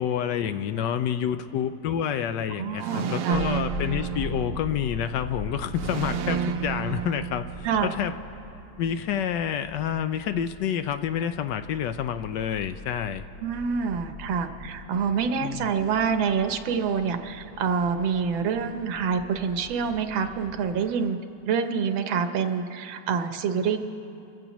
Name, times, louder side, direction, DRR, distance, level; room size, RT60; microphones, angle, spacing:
voice 1, 0.0-8.1 8.8-13.2 15.4-15.7, left 9 dB, 75° left, 10 dB, 1.1 m, -28 dB
voice 2, 2.6-3.4 7.6-7.9 13.4-21.2 21.4-23.8, right 6 dB, 80° right, 7 dB, 1.6 m, -26 dB
sound 1, 2.8-5.0 5.7-7.9, right 8 dB, 65° right, 1.1 m, -31 dB
sound 2, 3.3-20.7, left 1 dB, 50° left, 2.2 m, -41 dB
29.0 x 15.5 x 3.0 m, 2.7 s
omnidirectional pair, 2.1 m